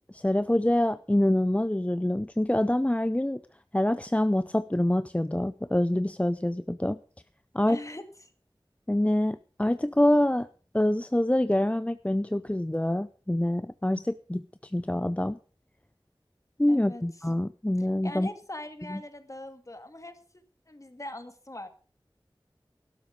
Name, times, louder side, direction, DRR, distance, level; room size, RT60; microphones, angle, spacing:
voice 1, 0.1-3.4 3.7-7.0 7.5-7.8 8.9-10.5 10.7-15.4 16.6-18.3 18.9-19.0, left 1 dB, 15° left, 13 dB, 0.5 m, -26 dB
voice 2, 7.7-8.0 16.7-17.0 17.8-20.2 20.7-21.7, left 1 dB, 40° left, 8 dB, 2.1 m, -41 dB
12.5 x 12.5 x 5.2 m, 0.39 s
wide cardioid pair, 50°, 9 cm